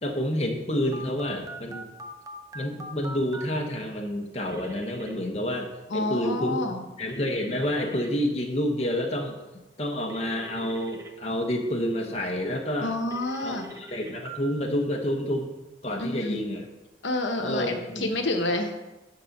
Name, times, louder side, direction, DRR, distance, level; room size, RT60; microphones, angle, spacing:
voice 1, 0.0-1.9 2.5-5.7 5.9-6.6 7.0-9.4 9.8-12.9 13.4-15.5 15.8-16.7 17.4-18.3, equal, 35° left, 2 dB, 1.0 m, -29 dB
Telephone, 0.9-3.5 4.5-5.1 7.1-8.1 10.1-11.1 13.1-14.4, right 1 dB, 15° right, 0.6 m, -42 dB
voice 2, 5.9-6.8 12.8-13.7 16.0-16.4 17.0-18.7, left 2 dB, 85° left, 5 dB, 1.0 m, -28 dB
10.5 x 4.0 x 5.9 m, 1.1 s
head